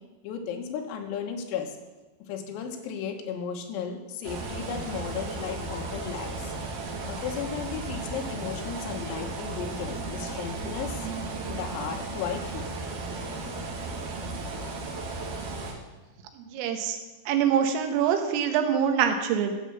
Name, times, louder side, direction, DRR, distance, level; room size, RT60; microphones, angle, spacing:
voice 1, 0.2-1.8 2.3-6.5 7.1-11.1 11.5-12.7, left 7 dB, 90° left, 3 dB, 4.0 m, -35 dB
sound 1, 4.2-15.7, right 3 dB, 60° right, 2.3 m, -35 dB
voice 2, 16.4-17.0 17.3-19.5, right 8 dB, 80° right, 6 dB, 3.8 m, -25 dB
13.5 x 7.6 x 7.1 m, 1.2 s
omnidirectional pair, 5.9 m